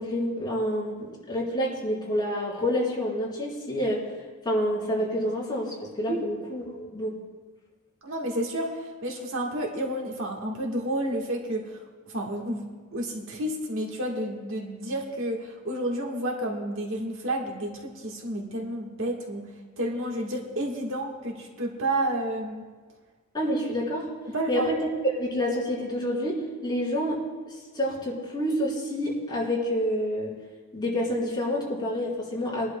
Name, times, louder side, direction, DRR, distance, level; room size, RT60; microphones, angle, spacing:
voice 1, 0.0-4.0 4.5-7.1 23.3-24.1 24.5-24.8 25.2-27.2 27.7-30.3 30.7-32.7, equal, 20° left, -6 dB, 3.4 m, -28 dB
voice 2, 8.0-11.8 12.1-19.5 19.8-22.6 24.2-24.7, right 1 dB, 65° right, 0 dB, 1.4 m, -30 dB
24.0 x 11.0 x 2.2 m, 1.4 s
head